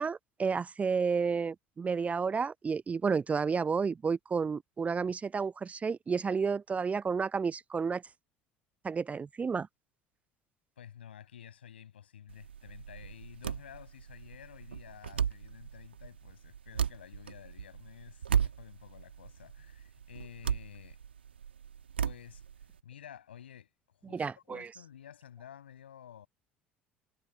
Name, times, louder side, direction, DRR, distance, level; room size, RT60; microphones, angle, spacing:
voice 1, 0.0-8.0 8.8-9.7 24.1-24.7, right 5 dB, 25° right, 0.6 m, -31 dB
voice 2, 10.8-21.0 22.0-22.4 22.8-23.7 24.0-26.3, left 9 dB, 75° left, 7.5 m, -51 dB
sound 1, 12.3-22.8, right 8 dB, 80° right, 2.0 m, -36 dB
figure-of-eight pair, 60°, 6 cm